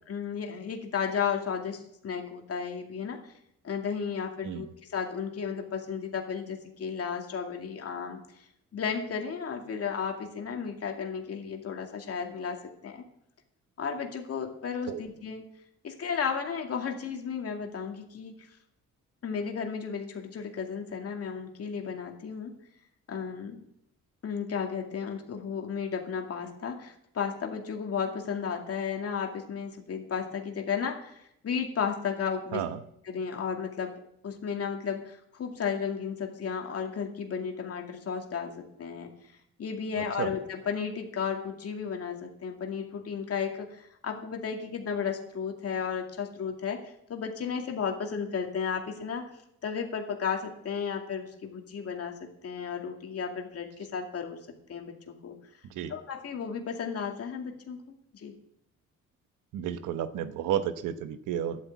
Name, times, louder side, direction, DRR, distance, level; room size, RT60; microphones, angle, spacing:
voice 1, 0.1-3.3 3.6-13.0 13.8-15.4 15.8-18.3 19.2-22.5 23.1-23.6 24.2-32.6 33.1-39.1 39.6-49.3 49.6-54.4 54.7-55.4 55.9-58.4, left 6 dB, 50° left, 3 dB, 2.3 m, -34 dB
voice 2, 39.9-40.3 55.7-56.0 59.5-61.6, right 10 dB, 90° right, 11 dB, 1.0 m, -32 dB
12.0 x 8.8 x 8.2 m, 0.75 s
cardioid pair, 90°, 30 cm